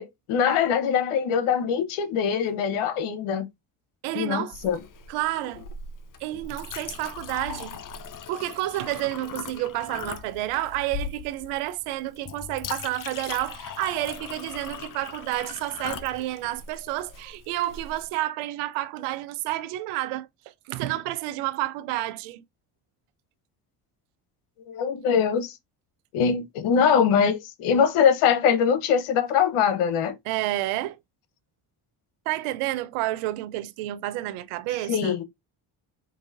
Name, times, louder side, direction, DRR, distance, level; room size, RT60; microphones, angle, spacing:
voice 1, 0.0-3.5 4.1-4.8 24.7-25.6 26.1-30.2 34.9-35.2, left 7 dB, 75° left, 0.9 m, -23 dB
voice 2, 4.0-4.5 5.1-5.6 6.2-7.7 8.3-20.3 20.7-22.4 30.3-31.0 32.3-35.2, right 16 dB, 80° right, 0.6 m, -30 dB
Chink clink, 4.5-18.1, left 6 dB, 40° left, 0.7 m, -39 dB
4.7 x 2.7 x 2.5 m
supercardioid pair, 60°, 50 cm